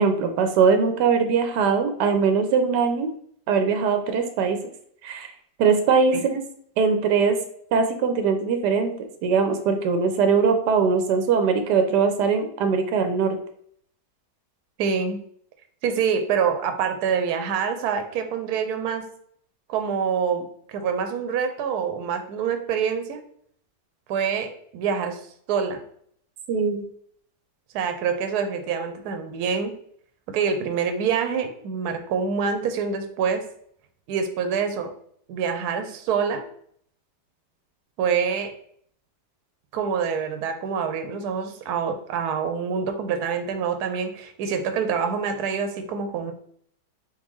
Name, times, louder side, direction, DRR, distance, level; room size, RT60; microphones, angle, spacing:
voice 1, 0.0-3.1 3.5-4.6 5.0-5.3 5.6-6.4 6.8-7.4 7.7-8.9 9.2-13.4 26.5-26.8, right 5 dB, 90° right, 6 dB, 1.2 m, -21 dB
voice 2, 14.8-15.2 15.8-19.0 19.7-23.2 24.1-24.5 24.7-25.2 25.5-25.8 27.7-29.7 30.3-33.4 34.1-34.9 35.3-36.4 38.0-38.5 39.7-46.3, right 6 dB, 75° right, 6 dB, 1.1 m, -26 dB
4.1 x 3.7 x 3.1 m, 0.64 s
omnidirectional pair, 1.8 m